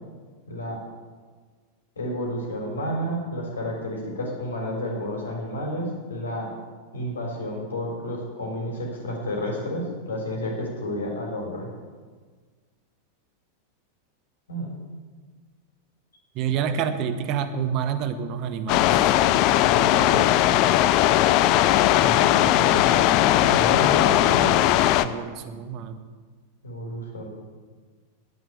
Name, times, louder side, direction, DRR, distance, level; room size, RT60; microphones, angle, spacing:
voice 1, 0.5-0.8 2.0-6.5 6.9-11.7 14.5-14.7 16.5-16.7 19.6-20.6 22.0-24.5 26.6-27.3, left 1 dB, 70° left, 0 dB, 3.7 m, -31 dB
voice 2, 16.3-19.1 25.0-26.0, right 8 dB, 40° right, 10 dB, 1.0 m, -28 dB
sound 1, 18.7-25.1, left 13 dB, 40° left, 0.5 m, -19 dB
10.5 x 8.9 x 8.4 m, 1.5 s
figure-of-eight pair, 90°, 0 cm